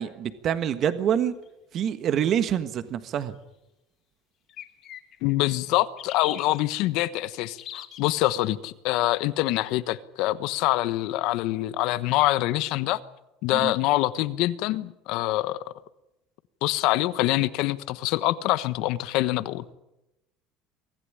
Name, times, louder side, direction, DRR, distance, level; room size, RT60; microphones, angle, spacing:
voice 1, 0.0-1.3 1.7-3.3 13.6-13.7, right 9 dB, 40° right, 11 dB, 1.4 m, -26 dB
sound 1, 1.5-1.6 4.5-5.4 6.0-6.6 7.6-8.3, left 10 dB, 45° left, 3.1 m, -40 dB
voice 2, 5.2-13.0 13.4-15.6 16.6-19.6, left 17 dB, 65° left, 15 dB, 1.1 m, -25 dB
24.5 x 15.0 x 9.9 m, 0.93 s
cardioid pair, 140°, 0 cm